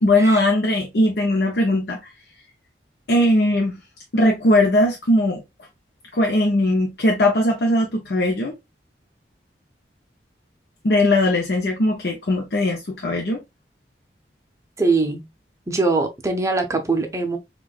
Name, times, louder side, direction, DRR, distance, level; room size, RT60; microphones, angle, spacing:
voice 1, 0.0-2.0 3.1-3.8 4.1-5.4 6.1-8.5 10.8-13.4, left 1 dB, 65° left, 0.6 m, -19 dB
voice 2, 14.8-15.3 15.7-17.4, right 3 dB, 15° right, 0.6 m, -22 dB
4.6 x 2.3 x 2.3 m
head